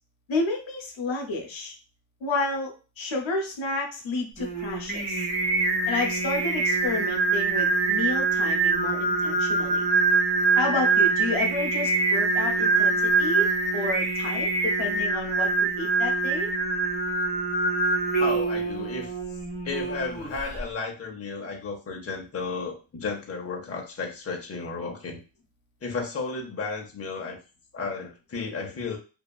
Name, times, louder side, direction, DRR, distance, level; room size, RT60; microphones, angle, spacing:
voice 1, 0.3-1.8 2.2-5.2 5.9-9.8 10.5-13.5 13.7-16.5, left 3 dB, 80° left, 2 dB, 0.7 m, -31 dB
Singing, 4.4-20.6, right 3 dB, 20° right, 0.9 m, -24 dB
voice 2, 18.2-19.1 19.6-25.2 25.8-27.4 27.7-29.0, left 4 dB, 30° left, 0 dB, 0.6 m, -33 dB
2.7 x 2.2 x 2.2 m, 0.33 s
wide cardioid pair, 125°, 47 cm